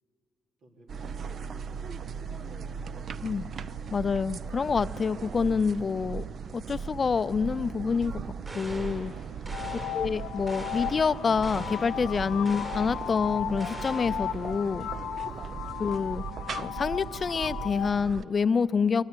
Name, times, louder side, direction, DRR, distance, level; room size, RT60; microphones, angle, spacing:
voice 1, 0.6-2.9 9.4-9.8 15.2-15.7, right 1 dB, 80° right, 1 dB, 3.6 m, -56 dB
sound 1, 0.9-18.2, right 6 dB, 55° right, 0.5 m, -38 dB
voice 2, 3.9-6.2 6.5-9.1 9.9-14.9 15.8-16.2 16.6-19.0, left 5 dB, 40° left, 16 dB, 0.4 m, -27 dB
sound 2, 8.4-9.1 9.4-10.1 10.5-11.1 11.4-12.0 12.4-13.0 13.6-14.2, right 2 dB, 35° right, 5.0 m, -42 dB
sound 3, 9.5-17.9, left 11 dB, 85° left, 0.6 m, -36 dB
22.5 x 19.0 x 9.7 m, 2.9 s
cardioid pair, 90°, 0 cm